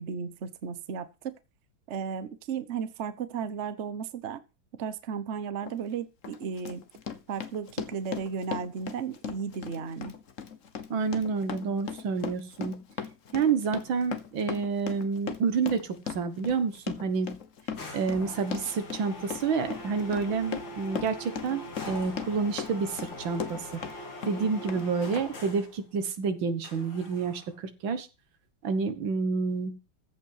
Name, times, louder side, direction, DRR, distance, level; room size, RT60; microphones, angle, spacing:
voice 1, 0.0-1.4 1.9-4.4 4.8-6.8 7.3-10.1, right 6 dB, 45° right, 1.1 m, -34 dB
Run, 5.6-5.8 6.2-24.0 24.2-24.8 25.1-25.2, left 7 dB, 45° left, 1.3 m, -38 dB
voice 2, 10.9-12.8 13.3-17.4 17.9-21.6 21.9-23.7 24.3-28.1 28.6-29.8, right 5 dB, 75° right, 2.1 m, -29 dB
sound 1, 17.7-25.8 26.6-27.5, left 1 dB, 70° left, 3.3 m, -42 dB
14.5 x 5.7 x 5.6 m
omnidirectional pair, 2.1 m